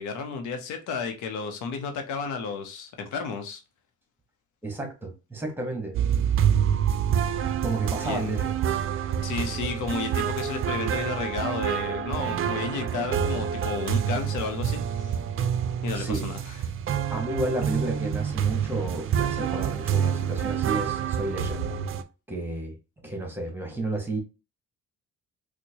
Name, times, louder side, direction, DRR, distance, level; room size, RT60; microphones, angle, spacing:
voice 1, 0.0-3.6 8.0-8.4 9.2-15.1 15.8-16.5, left 5 dB, 90° left, 0.7 m, -32 dB
voice 2, 4.6-6.0 7.6-8.8 15.9-16.3 17.1-21.8 22.3-22.8 23.0-24.2, right 2 dB, 5° right, 1.2 m, -32 dB
sound 1, 5.9-22.0, right 8 dB, 45° right, 0.4 m, -27 dB
4.4 x 2.2 x 2.8 m
cardioid pair, 90°, 30 cm